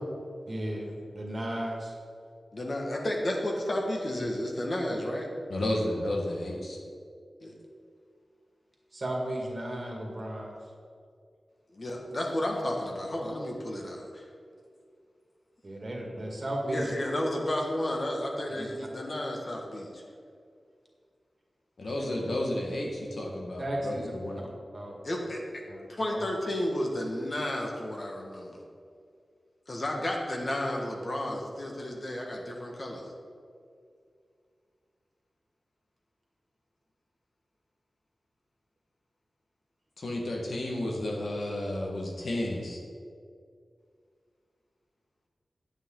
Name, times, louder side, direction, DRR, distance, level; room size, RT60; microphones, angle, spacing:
voice 1, 0.5-2.0 5.6-5.8 8.9-10.6 15.6-16.9 18.6-18.7 22.0-22.1 23.6-24.1 24.7-25.0 25.7-26.2, right 1 dB, 45° right, -1 dB, 2.0 m, -35 dB
voice 2, 2.5-5.3 7.4-7.6 11.7-14.3 16.7-20.0 25.0-25.6 25.9-28.6 29.7-33.1, left 1 dB, 45° left, 0 dB, 1.5 m, -32 dB
voice 3, 5.5-6.8 21.8-24.4 40.0-42.8, left 1 dB, 70° left, -1 dB, 1.5 m, -32 dB
9.0 x 8.9 x 3.8 m, 2.3 s
wide cardioid pair, 80°, 0 cm